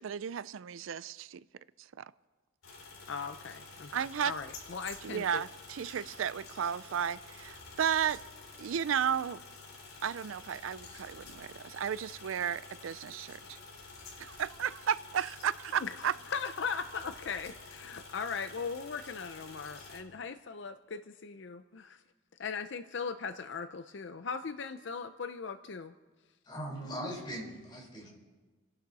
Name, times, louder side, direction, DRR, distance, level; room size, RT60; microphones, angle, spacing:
voice 1, 0.0-1.4 1.8-2.1 3.9-4.3 5.0-8.2 8.6-9.4 10.0-13.6 14.2-16.1, right 8 dB, 75° right, 17 dB, 0.4 m, -33 dB
sound 1, 2.6-20.0, left 3 dB, 80° left, 4.6 m, -50 dB
voice 2, 3.1-5.4 5.9-6.0 15.8-22.0 22.4-25.9, left 5 dB, 60° left, 9 dB, 0.6 m, -39 dB
voice 3, 26.4-28.1, equal, 20° left, -2 dB, 4.2 m, -40 dB
28.5 x 11.0 x 4.1 m, 1.3 s
head